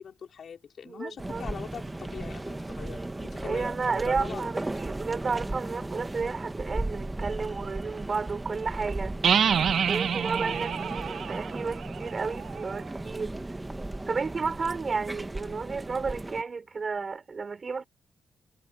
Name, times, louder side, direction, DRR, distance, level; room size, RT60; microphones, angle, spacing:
voice 1, 0.0-3.8 4.1-4.5 10.4-10.8, left 7 dB, 55° left, 4.4 m, -42 dB
voice 2, 0.8-1.4 3.4-9.2 9.9-13.4 14.1-17.8, right 4 dB, 35° right, 5.0 m, -32 dB
sound 1, 1.2-16.4, right 2 dB, 15° right, 1.3 m, -36 dB
sound 2, 9.2-12.9, right 7 dB, 60° right, 1.2 m, -28 dB
wide cardioid pair, 145°, 0 cm